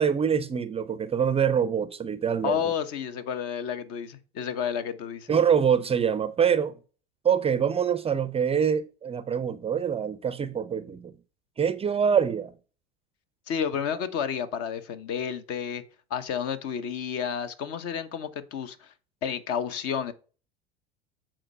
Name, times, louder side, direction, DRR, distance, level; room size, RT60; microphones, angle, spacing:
voice 1, 0.0-2.6 5.3-6.7 7.2-11.1 11.6-12.5, right 7 dB, 20° right, 0.5 m, -25 dB
voice 2, 2.4-5.3 13.5-15.8 16.1-18.9 19.2-20.1, left 7 dB, 50° left, 1.1 m, -31 dB
7.6 x 4.4 x 6.1 m
hypercardioid pair, 80°, 30 cm